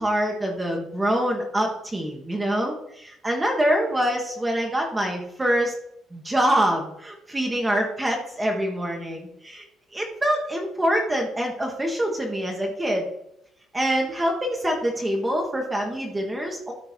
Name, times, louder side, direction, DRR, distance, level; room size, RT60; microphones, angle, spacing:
voice 1, 0.0-5.8 6.1-9.7 9.9-13.1 13.7-16.7, equal, 10° right, 1 dB, 1.4 m, -25 dB
13.0 x 4.4 x 4.5 m, 0.77 s
cardioid pair, 145°, 0 cm